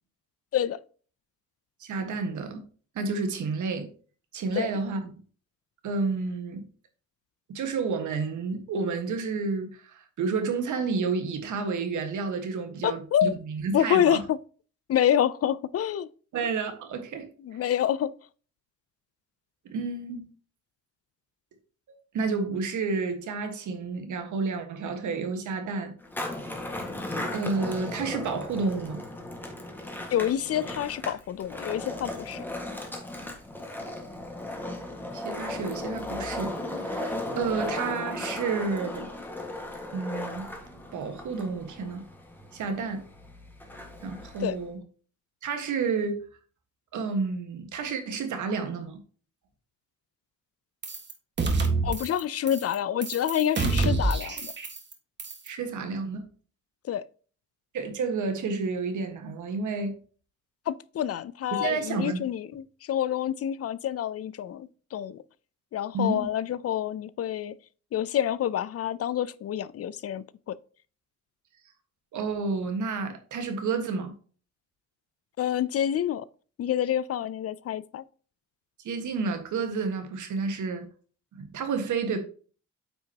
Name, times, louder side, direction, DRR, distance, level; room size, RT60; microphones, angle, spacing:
voice 1, 1.8-2.7 2.9-3.9 4.3-5.1 5.8-6.6 7.5-14.2 16.3-17.6 19.6-20.3 21.9-25.9 27.3-29.0 35.1-39.1 39.9-40.5 40.9-42.0 42.5-43.0 44.0-44.8 45.4-46.2 46.9-49.0 55.4-56.3 57.7-60.0 61.5-62.2 65.9-66.3 72.1-74.1 78.8-80.9 81.3-82.2, right 4 dB, 80° right, 1.6 m, -30 dB
voice 2, 12.8-13.3 13.7-14.4 14.9-16.1 17.4-18.1 30.1-32.4 44.4-44.6 51.8-54.5 56.9-57.0 60.7-65.2 65.7-67.6 67.9-70.6 75.4-76.3 76.6-78.0, left 10 dB, 55° left, 0.5 m, -27 dB
Skateboard, 26.0-44.7, left 1 dB, 5° left, 1.6 m, -36 dB
sound 1, 50.8-51.1 51.4-52.2 52.5-52.8 53.0-54.9 55.2-55.5, right 3 dB, 35° right, 1.6 m, -27 dB
8.9 x 5.8 x 2.8 m
cardioid pair, 120°, 30 cm